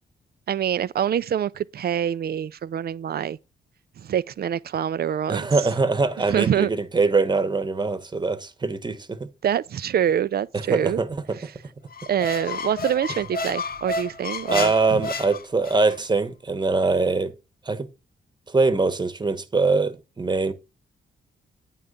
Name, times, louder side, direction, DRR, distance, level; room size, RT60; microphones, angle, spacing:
voice 1, 0.5-3.4 4.0-5.4 6.3-6.7 9.4-11.0 12.1-14.7, right 9 dB, 55° right, 0.5 m, -25 dB
voice 2, 5.3-9.3 10.5-11.4 14.5-17.3 17.6-17.9 18.5-20.5, right 3 dB, 25° right, 1.1 m, -23 dB
Squeak, 11.9-16.0, left 3 dB, 50° left, 0.8 m, -31 dB
9.1 x 3.7 x 6.7 m
cardioid pair, 70°, 19 cm